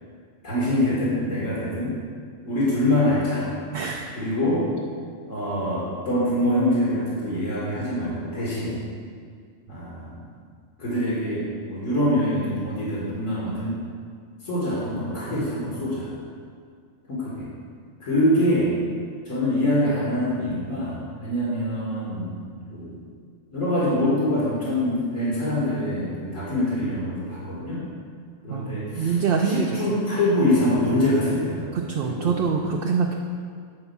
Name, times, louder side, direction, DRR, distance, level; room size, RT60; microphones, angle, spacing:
voice 1, 0.4-2.0 2.4-3.5 4.1-4.7 5.2-8.8 9.7-10.2 10.8-13.8 14.4-16.1 17.1-17.4 18.0-18.7 19.3-22.4 22.7-23.0 23.5-27.8 28.4-29.1 29.5-31.7 32.0-32.3, left 1 dB, 75° left, -8 dB, 2.4 m, -24 dB
voice 2, 3.7-4.2 15.3-15.5 28.5-29.7 31.7-33.2, right 6 dB, 55° right, 1 dB, 0.7 m, -25 dB
9.9 x 4.4 x 6.9 m, 2.1 s
omnidirectional pair, 1.4 m